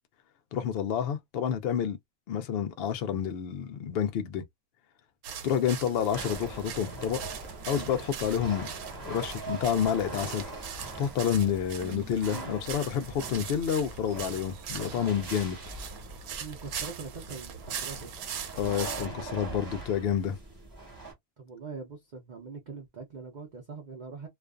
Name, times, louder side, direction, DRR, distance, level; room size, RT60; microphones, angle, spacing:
voice 1, 0.5-2.0 2.3-4.4 5.4-7.2 7.7-8.7 9.0-10.5 11.0-15.6 18.6-20.4, left 8 dB, 80° left, 0.5 m, -29 dB
sound 1, 5.2-19.1, right 7 dB, 75° right, 1.1 m, -41 dB
sound 2, 6.1-21.1, right 3 dB, 15° right, 0.8 m, -42 dB
voice 2, 16.4-18.1 21.4-24.3, right 5 dB, 50° right, 0.5 m, -42 dB
2.5 x 2.3 x 2.4 m
omnidirectional pair, 1.6 m